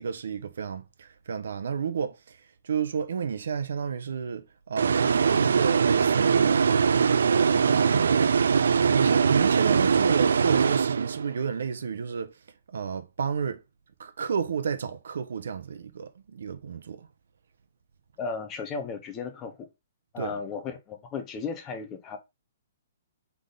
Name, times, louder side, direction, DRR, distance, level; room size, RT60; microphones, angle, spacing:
voice 1, 0.0-6.8 7.3-8.2 8.9-12.4 12.7-13.6 14.0-17.1 20.2-20.4, right 6 dB, 70° right, 0.8 m, -31 dB
sound 1, 4.8-11.4, right 6 dB, 85° right, 0.3 m, -22 dB
voice 2, 18.2-19.7 20.1-22.2, left 5 dB, 15° left, 0.6 m, -35 dB
3.8 x 3.4 x 3.8 m
hypercardioid pair, 170°, 0 cm